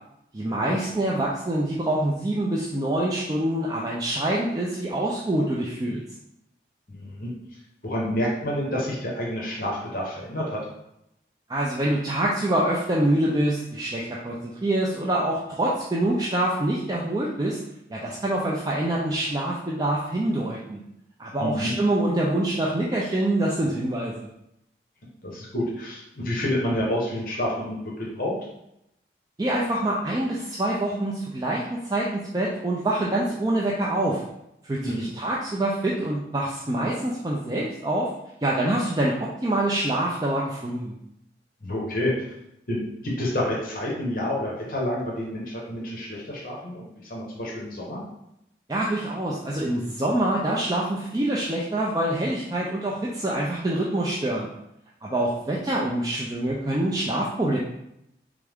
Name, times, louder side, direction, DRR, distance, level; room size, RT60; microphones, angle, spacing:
voice 1, 0.3-6.0 11.5-17.6 17.9-20.8 21.2-24.3 29.4-34.2 34.7-38.1 38.4-40.9 48.7-54.5 55.0-57.6, right 1 dB, 20° right, -4 dB, 0.4 m, -25 dB
voice 2, 6.9-7.3 7.8-10.6 21.4-21.7 25.2-28.3 34.8-35.1 41.6-42.2 42.7-48.0, left 1 dB, 50° left, -4 dB, 1.0 m, -29 dB
3.6 x 3.4 x 3.5 m, 0.82 s
head